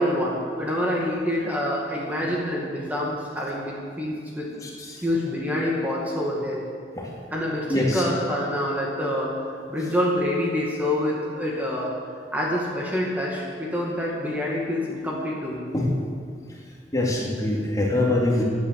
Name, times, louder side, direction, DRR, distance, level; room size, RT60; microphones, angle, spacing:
voice 1, 0.0-4.5 5.0-6.6 7.3-9.3 9.7-11.9 12.3-15.6, left 1 dB, 10° right, -4 dB, 2.2 m, -26 dB
voice 2, 4.6-5.0 6.9-7.1 7.7-8.0 15.7-15.9 16.9-18.4, left 1 dB, 20° left, -3 dB, 2.6 m, -24 dB
16.0 x 9.7 x 7.7 m, 2.2 s
head